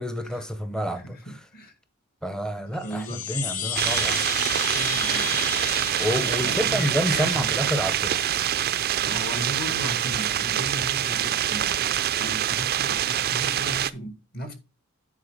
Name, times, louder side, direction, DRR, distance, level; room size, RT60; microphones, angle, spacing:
voice 1, 0.0-1.4 2.2-4.2 6.0-8.3, equal, 5° left, 0.7 m, -29 dB
voice 2, 0.9-1.7 2.8-3.2 4.6-5.3 6.2-7.5 9.0-14.5, equal, 45° left, 1.9 m, -36 dB
sound 1, 2.7-7.8, left 7 dB, 75° left, 1.0 m, -33 dB
sound 2, 3.7-13.9, right 11 dB, 45° right, 0.4 m, -25 dB
9.5 x 4.5 x 4.9 m
head